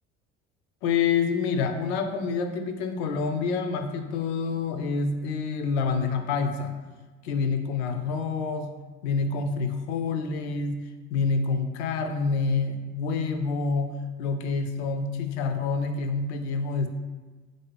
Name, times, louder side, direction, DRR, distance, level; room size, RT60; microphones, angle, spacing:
voice 1, 0.8-6.7 7.2-8.7 9.0-10.8 11.1-16.9, left 5 dB, 65° left, 6 dB, 0.5 m, -27 dB
3.7 x 2.6 x 3.3 m, 1.3 s
figure-of-eight pair, 60°, 35 cm